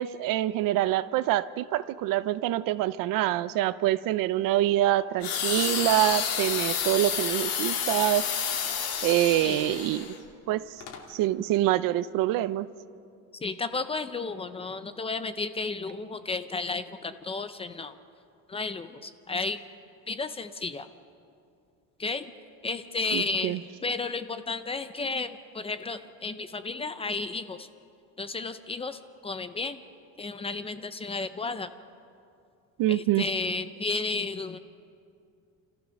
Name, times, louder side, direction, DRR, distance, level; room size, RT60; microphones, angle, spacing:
voice 1, 0.0-8.3 9.0-10.0 10.5-10.6 11.1-12.7 23.1-23.6 32.8-33.2, right 14 dB, 70° right, 16 dB, 0.7 m, -25 dB
sound 1, 5.2-10.2 10.8-11.0, left 7 dB, 80° left, 2.6 m, -30 dB
voice 2, 13.4-18.0 18.5-19.6 20.1-20.9 22.0-22.3 22.6-27.7 28.2-29.8 30.2-31.7 32.9-34.6, left 3 dB, 15° left, 11 dB, 0.5 m, -33 dB
30.0 x 14.0 x 6.4 m, 2.5 s
cardioid pair, 170°, 34 cm